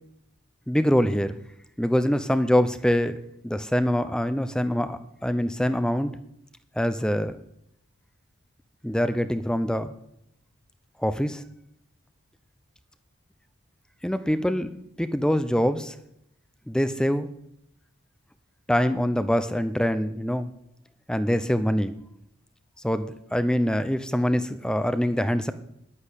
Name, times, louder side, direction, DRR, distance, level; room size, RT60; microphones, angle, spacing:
voice 1, 0.7-1.4 1.8-3.2 3.4-6.1 6.8-7.4 8.8-9.9 11.0-11.4 14.0-14.7 15.0-16.0 16.7-17.3 18.7-20.5 21.1-21.9 22.8-25.5, equal, 5° left, 11 dB, 0.6 m, -24 dB
11.0 x 9.8 x 8.4 m, 0.80 s
head